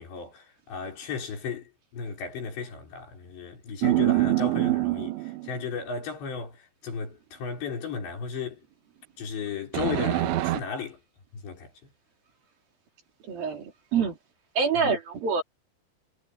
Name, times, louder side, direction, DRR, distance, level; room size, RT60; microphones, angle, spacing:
voice 1, 0.0-8.6 9.2-11.0 11.3-11.7 14.8-14.9, left 5 dB, 75° left, 7.3 m, -35 dB
sound 1, 3.8-5.6 9.7-10.6, right 18 dB, 85° right, 3.2 m, -25 dB
voice 2, 13.3-14.2 14.5-15.4, right 5 dB, 55° right, 5.1 m, -26 dB
omnidirectional pair, 5.1 m